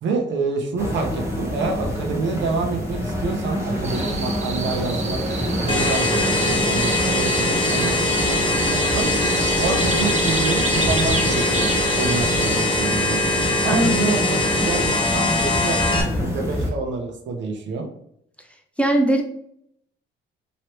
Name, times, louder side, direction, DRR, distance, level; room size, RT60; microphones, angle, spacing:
voice 1, 0.0-5.2 5.6-6.2 6.5-7.9 8.3-9.1 9.6-11.7 12.0-13.2 13.6-14.4 14.7-17.9, right 4 dB, 65° right, 4 dB, 0.8 m, -27 dB
sound 1, 0.8-16.7, equal, 15° right, 1.1 m, -27 dB
sound 2, 3.8-12.6, right 3 dB, 35° right, 0.7 m, -30 dB
sound 3, 5.7-16.0, left 2 dB, 25° left, 0.9 m, -22 dB
voice 2, 13.7-14.1 18.8-19.2, right 1 dB, 5° left, 2 dB, 0.5 m, -20 dB
3.0 x 3.0 x 3.0 m, 0.71 s
cardioid pair, 90°, 20 cm